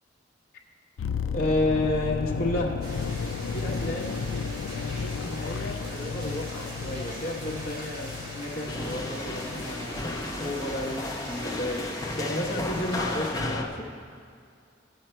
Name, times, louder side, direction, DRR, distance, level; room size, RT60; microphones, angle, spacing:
sound 1, 1.0-11.0 11.2-11.5, left 5 dB, 90° left, 0.3 m, -34 dB
voice 1, 1.3-2.8 3.5-4.2 4.9-13.9, left 1 dB, 50° left, -4 dB, 1.1 m, -31 dB
sound 2, 2.8-13.3, equal, 25° right, 3.0 m, -41 dB
sound 3, 8.7-13.6, left 2 dB, 20° left, 0.6 m, -34 dB
13.0 x 7.9 x 4.4 m, 2.3 s
head